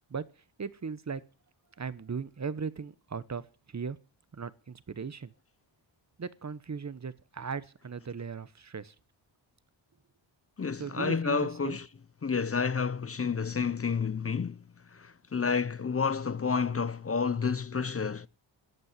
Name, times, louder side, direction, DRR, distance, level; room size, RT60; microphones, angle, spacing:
voice 1, 0.6-1.2 1.8-4.0 4.3-5.3 6.2-8.9 10.7-11.8, right 5 dB, 35° right, 1.1 m, -38 dB
voice 2, 10.6-11.9 12.2-14.6 14.9-18.3, left 5 dB, 30° left, 0.7 m, -30 dB
13.5 x 8.7 x 9.6 m
wide cardioid pair, 95°, 47 cm